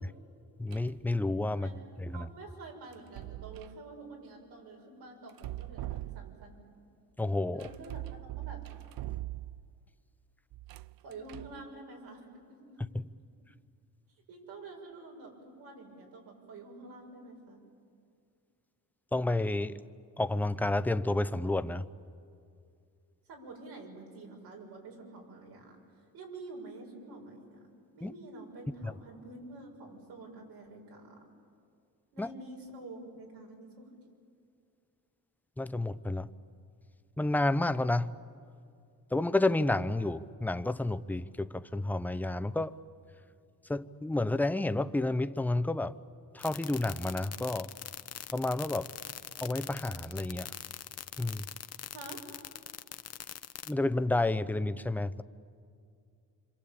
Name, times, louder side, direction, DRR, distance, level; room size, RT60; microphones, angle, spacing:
voice 1, 0.6-1.7 2.0-2.3 7.2-7.7 19.1-19.7 20.2-21.8 28.0-28.1 32.2-32.3 35.6-36.3 37.2-38.1 39.1-42.8 43.7-46.0 46.3-47.7 48.3-48.9 49.4-50.5 51.2-51.5 53.7-55.2, left 2 dB, 5° left, 0.6 m, -30 dB
sound 1, 0.7-1.0 2.9-3.8 5.3-6.6 7.6-9.8 10.5-11.7, right 16 dB, 65° right, 0.6 m, -42 dB
voice 2, 1.5-1.8 2.1-6.7 7.5-8.0 8.4-8.6 11.0-12.8 14.3-17.6 23.3-27.7 27.9-31.3 32.1-33.9 51.9-52.2, right 2 dB, 85° right, 6.5 m, -48 dB
sound 2, 46.4-53.7, left 9 dB, 40° left, 0.8 m, -42 dB
26.5 x 26.0 x 8.7 m
cardioid pair, 115°, 38 cm